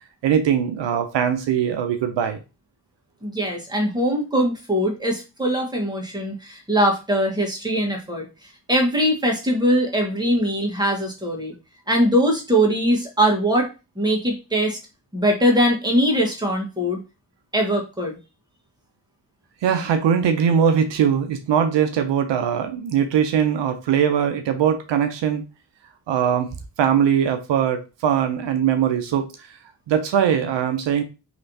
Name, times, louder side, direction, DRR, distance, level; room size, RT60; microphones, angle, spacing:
voice 1, 0.2-2.4 19.6-25.5 26.1-26.5 26.8-29.2 29.9-31.0, right 8 dB, 85° right, 7 dB, 0.6 m, -21 dB
voice 2, 3.2-8.2 8.7-11.5 11.9-13.7 14.0-14.8 15.1-17.0 17.5-18.2, equal, 10° right, 1 dB, 1.3 m, -21 dB
3.1 x 2.9 x 2.7 m, 0.29 s
cardioid pair, 45°, 42 cm